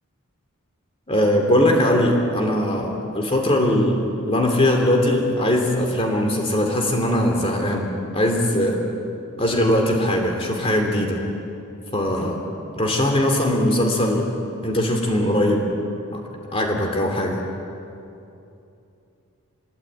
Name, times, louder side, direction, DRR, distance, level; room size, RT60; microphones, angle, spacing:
voice 1, 1.1-4.0 4.2-8.8 9.4-11.2 11.9-12.4 12.8-14.3 14.6-15.7 16.1-17.4, left 1 dB, 25° left, 2 dB, 2.8 m, -20 dB
25.0 x 22.0 x 8.9 m, 2.7 s
head